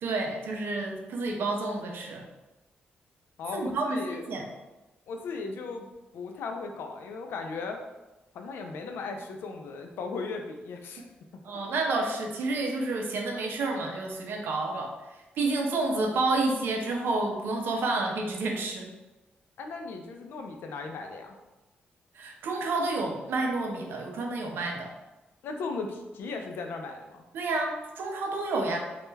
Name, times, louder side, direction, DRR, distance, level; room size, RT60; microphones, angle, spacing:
voice 1, 0.0-2.3 3.5-4.4 11.4-14.9 15.4-18.9 22.1-24.9 27.3-28.8, right 3 dB, 80° right, 2 dB, 0.5 m, -29 dB
voice 2, 3.4-4.2 5.1-7.8 8.3-11.0 11.7-11.8 19.6-21.4 25.4-27.2, left 4 dB, 90° left, 4 dB, 0.3 m, -37 dB
2.2 x 2.1 x 3.1 m, 1.1 s
cardioid pair, 115°, 4 cm